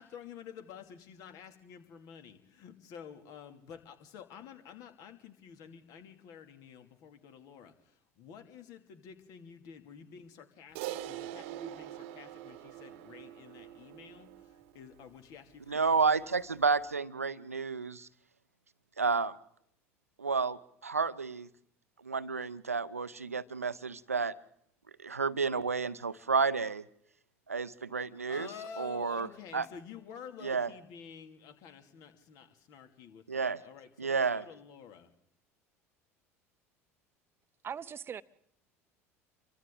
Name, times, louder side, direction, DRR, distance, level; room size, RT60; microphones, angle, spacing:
voice 1, 0.0-16.3 28.3-35.1, left 7 dB, 55° left, 2.7 m, -50 dB
Crash cymbal, 10.8-15.3, right 13 dB, 60° right, 1.1 m, -44 dB
voice 2, 15.7-18.1 19.0-19.3 20.2-21.5 22.0-24.3 25.0-26.8 27.5-28.5 28.8-29.3 29.5-29.6 30.4-30.7 33.3-33.6 34.0-34.4, right 5 dB, 85° right, 0.7 m, -31 dB
voice 3, 37.6-38.2, right 7 dB, 30° right, 0.9 m, -40 dB
29.0 x 24.0 x 3.9 m
figure-of-eight pair, 65°, 8 cm